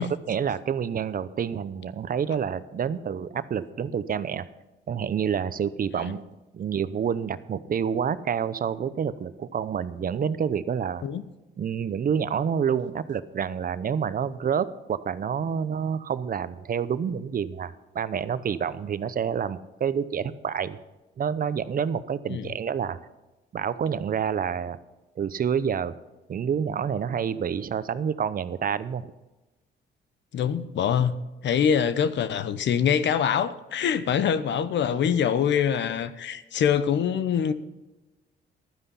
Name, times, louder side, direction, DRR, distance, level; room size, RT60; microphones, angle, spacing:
voice 1, 0.0-4.5 4.9-11.0 11.6-20.8 21.2-23.0 23.5-24.8 25.2-25.9 26.3-29.1, right 7 dB, 45° right, 0.8 m, -28 dB
voice 2, 30.3-31.1 31.4-37.5, left 8 dB, 65° left, 1.0 m, -24 dB
12.5 x 9.8 x 5.6 m
cardioid pair, 90°, 20 cm